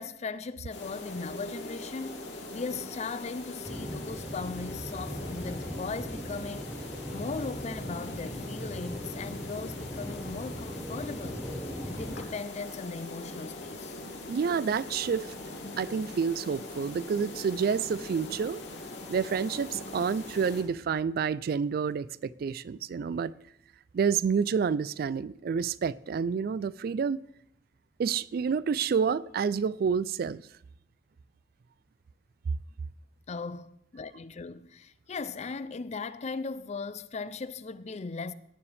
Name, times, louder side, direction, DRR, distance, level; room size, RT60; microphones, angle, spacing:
voice 1, 0.0-6.7 7.1-11.5 11.9-14.0 33.3-38.3, left 4 dB, 40° left, 0.5 m, -38 dB
sound 1, 0.7-20.6, left 2 dB, 85° left, 2.7 m, -42 dB
sound 2, 3.6-12.2, equal, 10° right, 0.9 m, -39 dB
voice 2, 14.3-15.3 15.8-18.6 19.1-23.3 23.9-27.2 28.0-30.4, right 6 dB, 55° right, 0.3 m, -29 dB
18.0 x 9.6 x 3.4 m
head